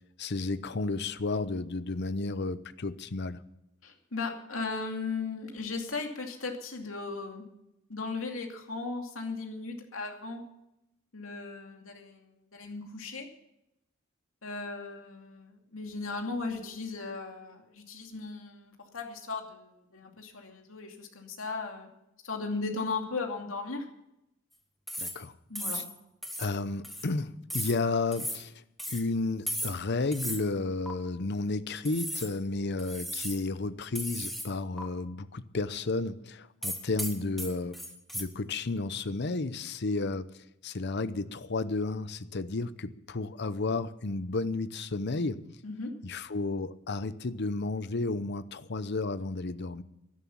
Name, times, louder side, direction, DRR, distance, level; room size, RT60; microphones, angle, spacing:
voice 1, 0.2-3.4 25.0-25.3 25.7-25.8 26.4-28.6 28.9-37.8 38.1-45.4 46.0-49.8, left 3 dB, 55° left, 14 dB, 0.8 m, -32 dB
voice 2, 3.8-7.4 7.9-10.4 11.1-13.3 14.4-21.9 22.2-23.9 25.5-25.8 45.6-45.9, left 4 dB, 80° left, 3 dB, 2.6 m, -37 dB
sound 1, 24.9-25.3 25.6-25.9 26.2-26.5 26.8-27.1 27.5-27.8 28.1-28.4 28.8-29.0 29.5-29.8 30.1-30.4 30.9-31.0 31.8-32.3 32.8-33.4 34.0-34.5 34.8-34.9 36.6-38.2, equal, ahead, 1.8 m, -36 dB
13.0 x 11.5 x 7.1 m, 0.85 s
head